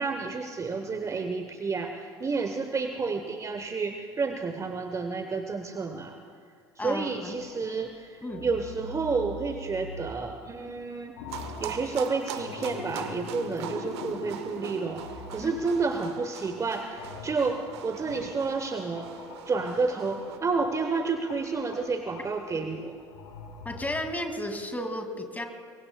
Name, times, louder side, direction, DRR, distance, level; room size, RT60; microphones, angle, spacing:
voice 1, 0.0-6.2 6.8-11.1 11.6-15.0 15.3-19.1 19.5-23.0, right 4 dB, 20° right, 6 dB, 1.0 m, -30 dB
voice 2, 6.8-7.3 8.2-8.5 15.4-15.5 23.6-25.4, left 1 dB, 10° left, 5 dB, 2.4 m, -33 dB
sound 1, 7.3-7.9 8.3-10.8 11.1-16.2 16.5-19.9 20.2-24.6, left 3 dB, 65° left, 3.3 m, -43 dB
sound 2, 11.3-20.4, right 10 dB, 65° right, 1.1 m, -42 dB
25.5 x 23.5 x 2.3 m, 2.1 s
figure-of-eight pair, 70°, 15 cm